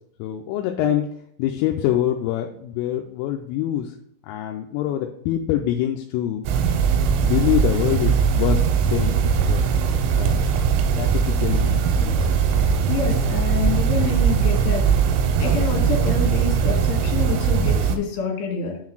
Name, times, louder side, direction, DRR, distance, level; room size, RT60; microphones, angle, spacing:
voice 1, 0.2-1.1 1.4-3.9 4.2-6.5 7.2-9.6 10.2-10.6 11.0-12.2, left 12 dB, 85° left, 3 dB, 3.1 m, -25 dB
sound 1, 6.5-18.0, right 6 dB, 85° right, 3.3 m, -20 dB
voice 2, 12.9-14.8 15.4-18.8, left 5 dB, 65° left, 0 dB, 3.4 m, -27 dB
7.1 x 3.8 x 6.1 m, 0.71 s
omnidirectional pair, 5.9 m